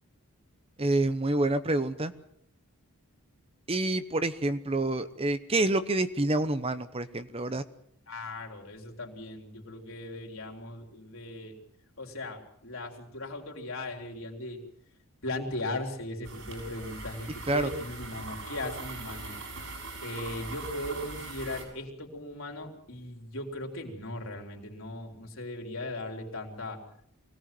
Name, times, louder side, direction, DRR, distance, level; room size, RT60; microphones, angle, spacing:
voice 1, 0.8-2.1 3.7-7.6 17.5-17.7, right 2 dB, 25° right, 12 dB, 0.9 m, -27 dB
voice 2, 8.1-11.6 12.0-14.6 15.2-19.4 20.0-26.8, left 1 dB, 60° left, 2 dB, 4.2 m, -38 dB
sound 1, 16.2-21.6, right 3 dB, 60° right, 7.1 m, -41 dB
24.0 x 18.0 x 7.8 m, 0.68 s
head